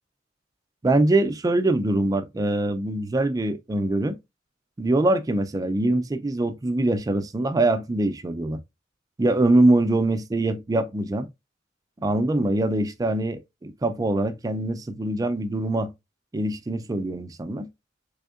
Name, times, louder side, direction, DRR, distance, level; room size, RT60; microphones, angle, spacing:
voice 1, 0.8-4.2 4.8-8.6 9.2-11.3 12.0-15.9 16.3-17.7, right 2 dB, 20° right, 0.3 m, -23 dB
3.5 x 3.5 x 2.3 m
head